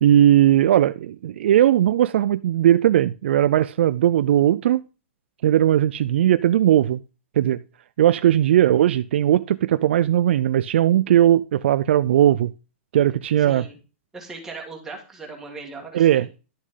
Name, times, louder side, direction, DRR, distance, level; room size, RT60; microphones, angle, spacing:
voice 1, 0.0-4.8 5.4-7.0 7.4-7.6 8.0-12.5 12.9-13.6 15.9-16.4, right 11 dB, 60° right, 0.3 m, -18 dB
voice 2, 13.4-13.8 14.1-16.3, right 3 dB, 5° right, 1.8 m, -38 dB
11.5 x 6.3 x 3.7 m
hypercardioid pair, 165°, 7 cm